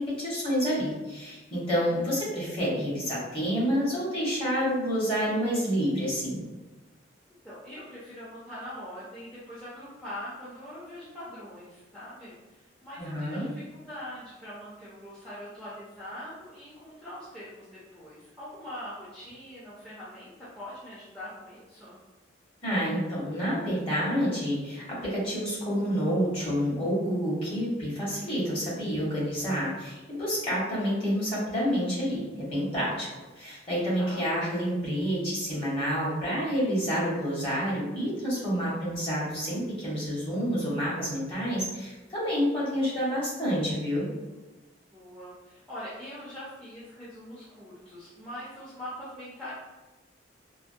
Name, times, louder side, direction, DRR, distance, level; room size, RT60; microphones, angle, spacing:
voice 1, 0.0-6.4 13.0-13.4 22.6-33.1 33.3-44.1, equal, 30° left, -7 dB, 1.1 m, -28 dB
voice 2, 7.4-22.0 34.0-34.3 44.9-49.5, left 1 dB, 5° left, -10 dB, 0.6 m, -43 dB
3.4 x 2.1 x 2.6 m, 1.2 s
head